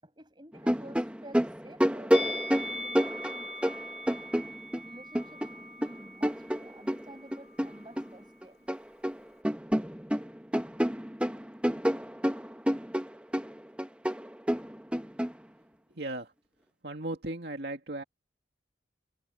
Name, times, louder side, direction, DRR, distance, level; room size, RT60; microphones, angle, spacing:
voice 1, 0.0-2.2 2.5-3.9 4.8-8.7, right 1 dB, 25° right, 6.0 m, -51 dB
sound 1, 0.5-4.8 5.1-8.1 8.4-9.2 9.4-15.3, equal, 5° right, 1.1 m, -29 dB
Musical instrument, 2.1-7.4 7.6-7.8, equal, 60° left, 3.0 m, -41 dB
voice 2, 15.9-16.3 16.8-18.0, right 2 dB, 70° right, 2.3 m, -36 dB
head